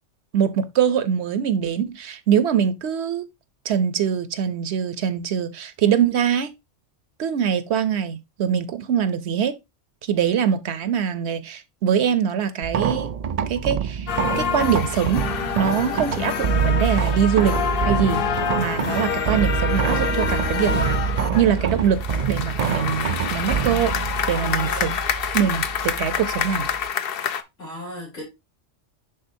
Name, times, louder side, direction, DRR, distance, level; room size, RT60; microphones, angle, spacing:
voice 1, 0.3-3.3 3.6-6.5 7.2-9.6 10.0-13.1 13.5-14.1 14.4-15.2 15.5-21.0 21.3-22.0 22.3-23.9 24.3-25.0 25.3-26.7, right 8 dB, 65° right, 0.9 m, -23 dB
sound 1, 12.6-26.9, right 6 dB, 85° right, 0.3 m, -26 dB
sound 2, 14.1-27.4, left 8 dB, 55° left, 0.8 m, -27 dB
voice 2, 24.3-25.0 26.1-26.2 27.6-28.2, left 1 dB, 85° left, 4.8 m, -36 dB
10.5 x 3.8 x 2.6 m
omnidirectional pair, 1.3 m